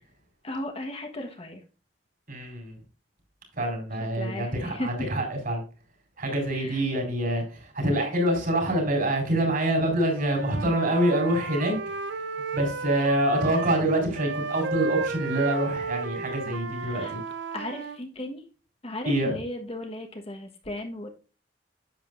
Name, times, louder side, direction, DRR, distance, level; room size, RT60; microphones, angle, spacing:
voice 1, 0.4-1.6 4.0-4.9 6.5-6.8 16.4-17.1 17.5-18.4 18.8-21.1, left 1 dB, 35° left, 1.3 m, -36 dB
voice 2, 2.3-2.7 3.6-5.6 6.2-7.4 7.7-11.7 12.5-17.2 19.1-19.3, right 1 dB, 50° right, 4.5 m, -26 dB
Wind instrument woodwind instrument, 10.1-13.8 14.1-18.0, right 4 dB, 70° right, 0.6 m, -33 dB
10.5 x 7.7 x 2.6 m
head